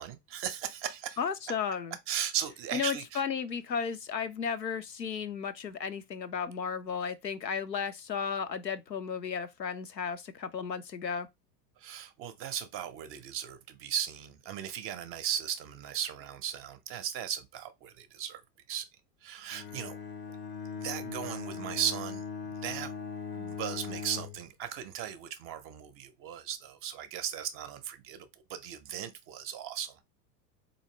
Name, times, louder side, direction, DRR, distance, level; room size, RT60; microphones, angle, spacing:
voice 1, 0.0-1.2 2.1-3.2 11.8-18.4 18.7-18.9 19.2-20.0 20.7-22.9 23.3-30.1, right 9 dB, 25° right, 0.6 m, -37 dB
voice 2, 1.2-2.0 2.7-11.3, left 6 dB, 90° left, 0.6 m, -34 dB
Bowed string instrument, 19.5-24.4, left 5 dB, 25° left, 0.5 m, -39 dB
4.2 x 2.7 x 2.7 m
figure-of-eight pair, 80°, 50 cm